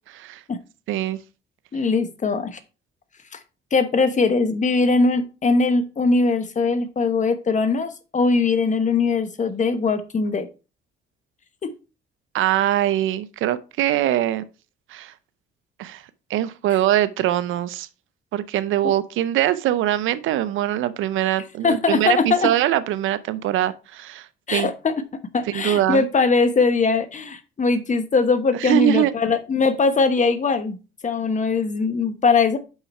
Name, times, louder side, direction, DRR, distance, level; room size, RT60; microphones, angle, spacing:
voice 1, 0.1-0.4 0.9-1.2 12.3-14.4 14.9-15.1 15.8-16.0 16.3-17.9 18.3-24.7 25.5-26.0 28.5-29.1, right 13 dB, 85° right, 0.6 m, -22 dB
voice 2, 1.7-2.6 3.3-3.4 3.7-10.5 11.6-11.7 18.8-18.9 21.6-22.5 24.5-24.9 25.3-30.8 31.0-32.6, left 4 dB, 40° left, 1.1 m, -21 dB
5.8 x 5.6 x 4.3 m
cardioid pair, 90°, 20 cm